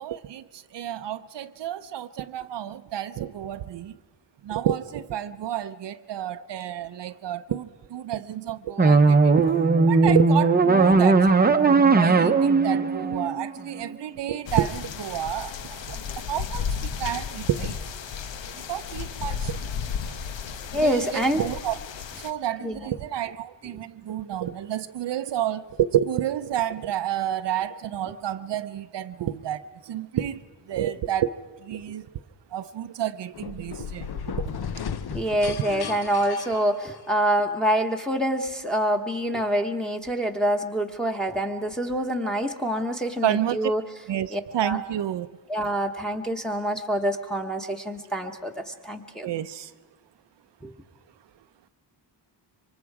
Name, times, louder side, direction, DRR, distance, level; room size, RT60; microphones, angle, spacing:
voice 1, 0.0-3.9 4.4-9.5 9.9-11.5 11.9-17.8 18.5-19.6 20.7-21.8 22.2-30.4 30.7-32.1 32.5-34.1 35.5-35.6 43.2-43.7 44.1-45.4 49.2-49.7, right 11 dB, 70° right, 10 dB, 0.6 m, -30 dB
sound 1, 8.8-13.9, right 4 dB, 20° right, 0.7 m, -18 dB
sound 2, 14.5-22.3, left 7 dB, 90° left, 1.0 m, -33 dB
voice 2, 20.7-21.4 22.6-22.9 35.1-43.8 44.3-44.8 45.5-49.3 50.6-50.7, equal, ahead, 1 dB, 1.1 m, -26 dB
sound 3, 33.3-37.3, left 7 dB, 60° left, 0.8 m, -35 dB
26.5 x 24.5 x 4.8 m, 1.3 s
wide cardioid pair, 180°, 43 cm